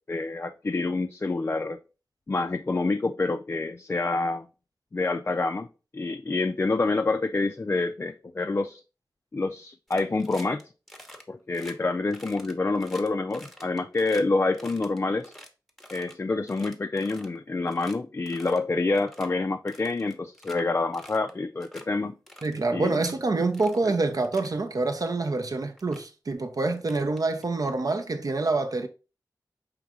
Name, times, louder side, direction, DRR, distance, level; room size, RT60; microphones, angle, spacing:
voice 1, 0.1-1.8 2.3-4.5 4.9-5.7 5.9-8.8 9.3-10.6 11.3-15.3 15.9-22.1 22.7-23.0, left 3 dB, 35° left, 0.3 m, -27 dB
sound 1, 9.9-10.6 10.9-11.2 11.5-11.7 12.1-14.2 14.5-16.1 16.5-17.4 17.7-18.0 18.3-18.6 18.9-19.3 19.7-20.6 20.9-21.3 21.6-21.9 22.3-23.1 23.5-23.8 24.2-24.5 25.4-25.5 25.8-26.1 26.8-27.7, equal, ahead, 0.8 m, -48 dB
voice 2, 22.4-28.9, right 3 dB, 55° right, 0.7 m, -26 dB
4.7 x 3.1 x 3.6 m
wide cardioid pair, 75°, 7 cm